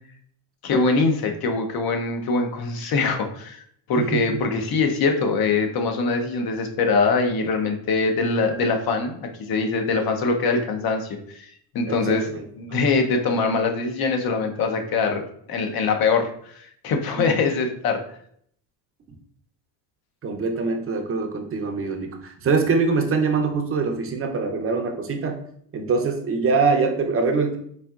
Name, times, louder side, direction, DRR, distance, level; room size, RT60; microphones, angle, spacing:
voice 1, 0.6-3.6 3.9-11.5 11.7-12.3 12.6-18.0, left 4 dB, 50° left, 4 dB, 0.8 m, -23 dB
voice 2, 11.9-12.4 12.7-12.8 17.2-17.3 20.2-25.4 25.7-27.6, right 4 dB, 30° right, 3 dB, 0.6 m, -24 dB
4.2 x 3.6 x 2.4 m, 0.65 s
cardioid pair, 110°, 47 cm